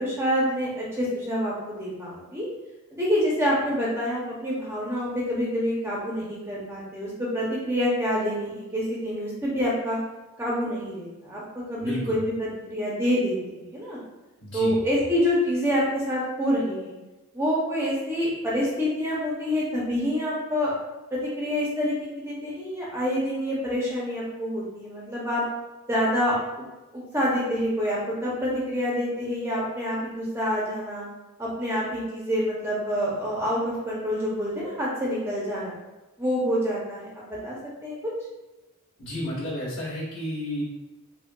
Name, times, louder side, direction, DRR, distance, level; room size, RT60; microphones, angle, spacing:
voice 1, 0.0-2.5 2.9-10.0 10.4-14.0 14.5-16.9 17.3-20.7 21.1-25.4 25.9-26.3 27.1-31.1 31.4-35.7 36.2-37.6 37.8-38.0, equal, 10° right, -5 dB, 0.6 m, -27 dB
voice 2, 11.8-12.2 14.4-14.8 39.0-40.6, equal, 55° left, -8 dB, 1.4 m, -32 dB
4.6 x 2.2 x 2.2 m, 1.1 s
head